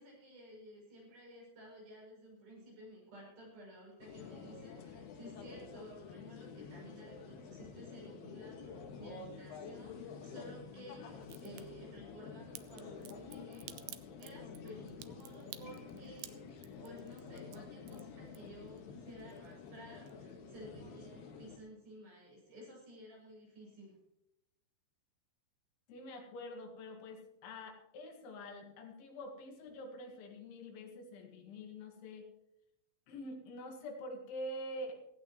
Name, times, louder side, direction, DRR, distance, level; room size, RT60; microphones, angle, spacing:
voice 1, 0.0-23.9, equal, 55° right, -4 dB, 9.0 m, -54 dB
sound 1, 4.0-21.6, left 5 dB, 70° left, 3.4 m, -49 dB
Crack, 11.2-11.6 12.5-18.8 19.1-19.8 20.1-20.2, right 14 dB, 85° right, 2.2 m, -51 dB
voice 2, 25.9-32.3 33.1-35.0, left 1 dB, 85° left, 2 dB, 4.3 m, -46 dB
17.5 x 15.5 x 3.1 m, 0.83 s
omnidirectional pair, 5.1 m